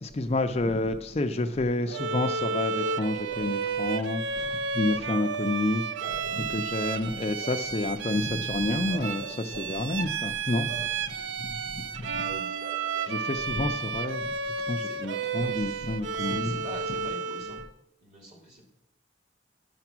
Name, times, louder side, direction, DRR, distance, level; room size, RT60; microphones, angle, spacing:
voice 1, 0.0-12.2 13.1-16.6, left 2 dB, 35° left, 0.5 m, -30 dB
Bark / Livestock farm animals working animals, 1.9-3.7 6.0-7.8 8.9-9.9 10.6-11.0 12.6-13.7 15.0-15.4, right 3 dB, 60° right, 1.5 m, -44 dB
Bowed string instrument, 1.9-17.7, right 5 dB, 80° right, 0.5 m, -32 dB
voice 2, 12.1-12.6 14.8-15.1 15.3-15.9 16.1-17.6 18.0-18.7, right 1 dB, 40° right, 3.0 m, -45 dB
11.5 x 5.8 x 6.1 m
head